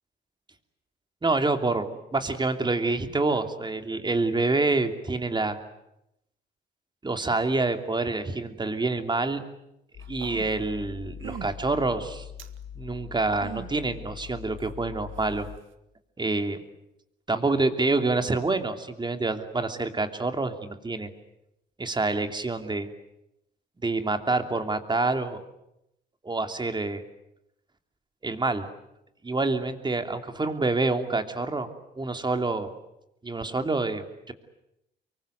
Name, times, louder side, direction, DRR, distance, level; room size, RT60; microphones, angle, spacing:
voice 1, 1.2-5.6 7.0-9.4 10.1-12.2 12.8-15.5 16.2-16.6 17.3-21.1 21.8-22.9 23.8-25.4 26.2-27.0 28.2-28.7 29.2-31.7 32.0-32.7 33.2-34.3, right 3 dB, 20° right, 7 dB, 2.9 m, -27 dB
sound 1, 9.9-15.6, left 8 dB, 65° left, 2.4 m, -42 dB
sound 2, 10.0-10.7 11.2-11.5 12.4-12.6 13.3-13.7 14.6-14.7, right 10 dB, 80° right, 1.8 m, -40 dB
24.5 x 23.5 x 9.3 m, 0.83 s
cardioid pair, 90°, 20 cm